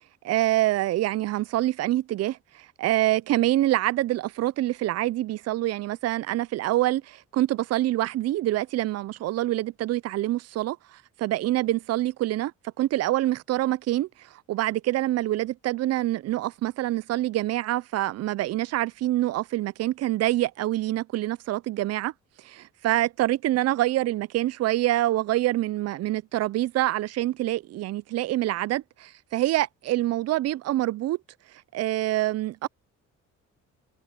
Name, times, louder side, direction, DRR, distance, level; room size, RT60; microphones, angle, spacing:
voice 1, 0.2-10.8 11.2-12.5 12.8-14.1 14.5-22.1 22.4-31.2 31.7-32.7, right 15 dB, 55° right, 0.4 m, -26 dB
cardioid pair, 90°, 30 cm